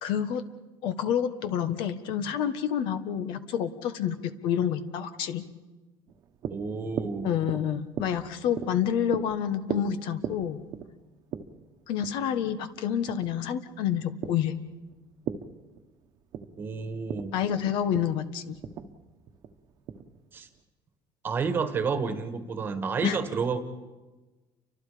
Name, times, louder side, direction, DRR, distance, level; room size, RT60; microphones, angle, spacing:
voice 1, 0.0-0.5 0.8-5.4 7.2-10.6 11.9-14.5 17.3-18.6 23.0-23.2, left 9 dB, 60° left, 11 dB, 1.4 m, -28 dB
sound 1, 6.1-20.6, right 8 dB, 40° right, 1.3 m, -40 dB
voice 2, 6.5-7.3 16.6-17.4 20.3-20.5 21.2-23.6, right 5 dB, 25° right, 9 dB, 1.6 m, -30 dB
30.0 x 24.5 x 5.1 m, 1.2 s
cardioid pair, 175°, 9 cm